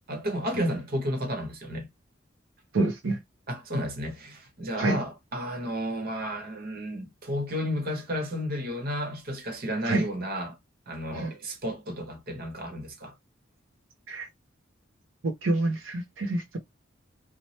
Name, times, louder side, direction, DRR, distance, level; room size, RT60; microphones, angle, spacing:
voice 1, 0.1-1.9 3.5-10.6 10.9-13.1, equal, 50° right, 1.0 m, -32 dB
voice 2, 2.7-3.2 4.8-5.0 9.8-10.1 11.1-11.3 14.1-14.3 15.2-16.6, right 2 dB, 80° right, 0.6 m, -27 dB
2.8 x 2.1 x 3.0 m
head